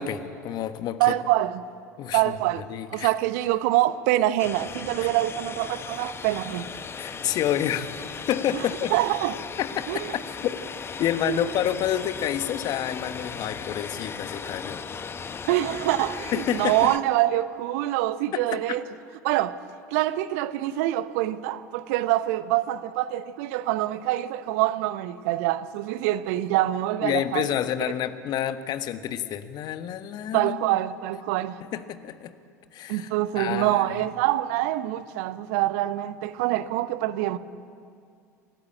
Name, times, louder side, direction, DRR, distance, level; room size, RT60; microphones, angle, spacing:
voice 1, 0.0-1.1 2.0-3.1 5.0-5.1 7.0-8.9 9.6-9.8 10.4-10.6 11.0-14.8 16.3-16.9 18.3-18.4 27.0-30.6 31.7-32.3 32.7-33.1 33.3-34.0, left 10 dB, 45° left, 1.3 m, -29 dB
voice 2, 1.0-1.6 2.1-2.6 2.9-6.7 8.9-9.3 9.9-10.0 11.3-11.5 15.5-18.8 19.2-19.6 19.9-27.4 30.3-31.6 32.9-37.4, right 15 dB, 60° right, 0.9 m, -25 dB
sound 1, 4.4-17.0, left 6 dB, 25° left, 1.1 m, -37 dB
27.5 x 14.0 x 8.8 m
figure-of-eight pair, 75°, 9 cm